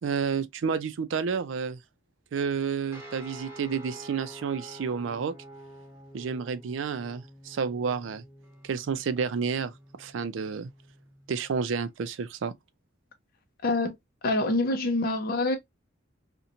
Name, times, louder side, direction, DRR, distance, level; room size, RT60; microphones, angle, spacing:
voice 1, 0.0-1.8 2.3-5.3 6.1-8.2 8.6-9.7 10.0-10.7 11.3-12.5, right 6 dB, 70° right, 0.4 m, -30 dB
sound 1, 2.9-11.9, right 1 dB, 15° right, 1.0 m, -48 dB
voice 2, 13.6-13.9 14.2-15.6, left 2 dB, 50° left, 0.5 m, -25 dB
2.8 x 2.1 x 2.4 m
head